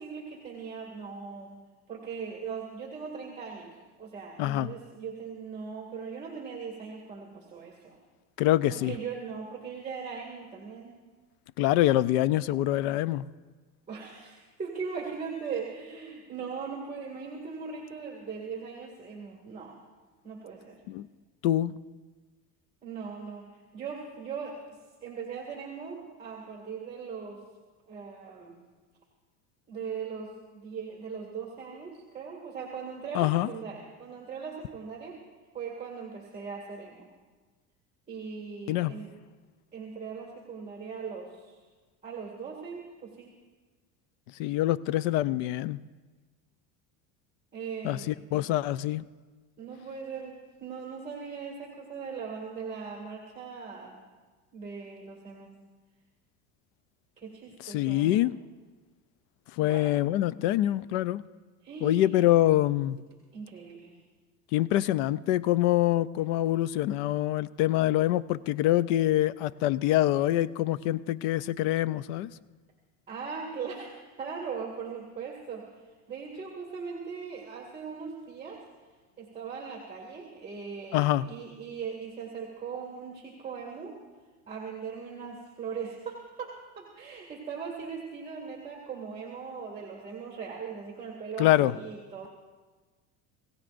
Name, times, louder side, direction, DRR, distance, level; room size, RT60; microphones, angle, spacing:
voice 1, 0.0-1.5 1.9-3.7 4.0-8.0 8.7-11.0 13.9-19.8 20.2-20.8 22.8-27.4 27.9-28.6 29.7-35.2 35.5-37.1 38.1-39.1 39.7-41.6 42.0-43.3 47.5-48.1 49.6-50.3 50.6-54.0 54.5-55.5 57.2-58.3 59.6-60.0 61.6-62.4 63.3-63.9 73.1-75.7 76.1-78.6 79.2-83.9 84.5-86.5 86.9-92.3, right 5 dB, 20° right, -2 dB, 2.1 m, -39 dB
voice 2, 4.4-4.7 8.4-9.0 11.6-13.3 20.9-21.1 21.4-21.7 33.1-33.5 38.7-38.9 44.4-45.8 47.8-49.0 57.6-58.3 59.6-61.2 61.8-63.0 64.5-72.3 80.9-81.3 91.4-91.7, left 14 dB, 80° left, 18 dB, 0.5 m, -25 dB
27.0 x 16.5 x 2.6 m, 1.4 s
cardioid pair, 145°, 35 cm